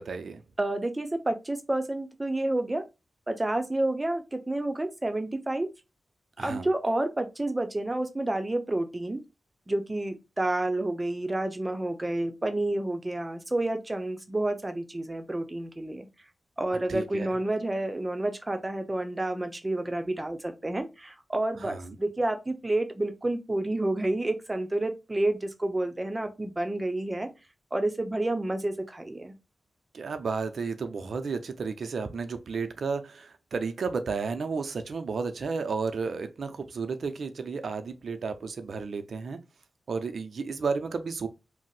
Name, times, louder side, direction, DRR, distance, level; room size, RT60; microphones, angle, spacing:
voice 1, 0.0-0.4 6.4-6.7 16.9-17.3 21.6-22.0 29.9-39.4 39.9-41.3, right 4 dB, 75° right, 0.4 m, -32 dB
voice 2, 0.6-2.8 3.3-5.7 6.4-9.2 9.7-16.1 16.6-27.3 27.7-29.3, right 1 dB, 25° right, 0.6 m, -29 dB
2.6 x 2.0 x 3.9 m
cardioid pair, 60°, 0 cm